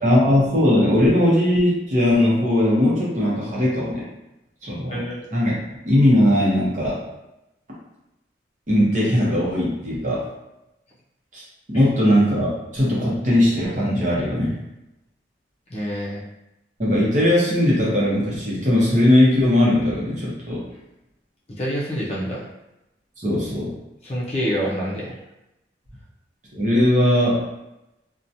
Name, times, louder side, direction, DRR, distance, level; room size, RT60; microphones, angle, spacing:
voice 1, 0.0-4.0 4.6-5.0 5.3-5.5 5.8-7.0 8.7-10.3 11.3-11.4 11.7-14.5 16.8-20.6 23.2-23.7 26.5-27.4, left 1 dB, 40° right, -6 dB, 0.8 m, -19 dB
voice 2, 4.9-5.2 11.7-11.8 15.7-16.2 21.5-22.5 24.0-25.2, equal, 35° left, -6 dB, 0.6 m, -27 dB
2.8 x 2.2 x 2.6 m, 0.92 s
head